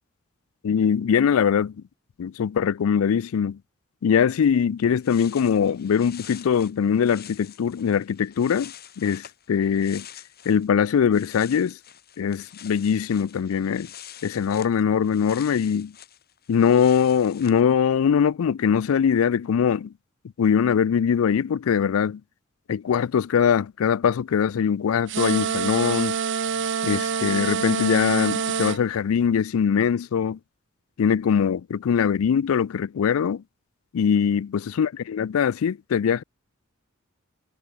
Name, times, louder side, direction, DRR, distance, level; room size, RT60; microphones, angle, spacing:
voice 1, 0.6-1.7 2.2-3.6 4.0-10.0 10.5-11.8 12.2-13.9 14.2-15.9 16.5-19.9 20.4-22.2 22.7-26.2 26.8-30.4 31.0-33.4 33.9-36.2, left 7 dB, 80° left, 0.4 m, -22 dB
sound 1, 4.8-10.7 11.0-17.6, left 10 dB, 50° left, 3.4 m, -46 dB
sound 2, 25.1-28.8, right 6 dB, 60° right, 0.8 m, -26 dB
head